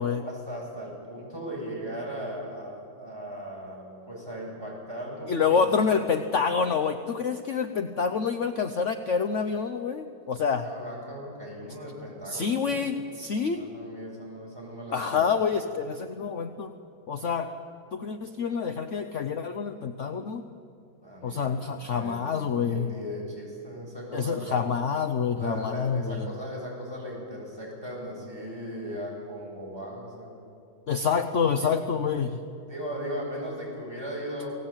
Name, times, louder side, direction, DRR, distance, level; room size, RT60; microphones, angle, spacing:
voice 1, 0.2-5.6 10.6-12.9 13.4-15.4 21.0-21.5 21.8-24.6 25.4-30.4 32.7-34.5, equal, 10° right, -4 dB, 7.8 m, -38 dB
voice 2, 5.3-10.6 12.2-13.7 14.9-16.7 17.1-17.5 17.9-20.4 21.2-22.9 24.1-26.3 30.9-32.4, left 6 dB, 55° left, 9 dB, 0.8 m, -27 dB
29.0 x 19.0 x 9.0 m, 2.5 s
omnidirectional pair, 2.3 m